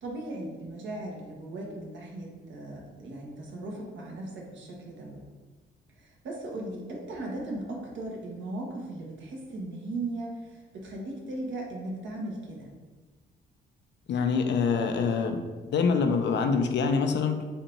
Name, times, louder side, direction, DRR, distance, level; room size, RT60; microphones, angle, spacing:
voice 1, 0.0-5.2 6.0-12.7, right 2 dB, 70° right, -1 dB, 1.2 m, -37 dB
voice 2, 14.1-15.4 15.7-17.4, left 5 dB, 65° left, 6 dB, 0.6 m, -25 dB
4.2 x 2.5 x 4.4 m, 1.3 s
cardioid pair, 90°, 20 cm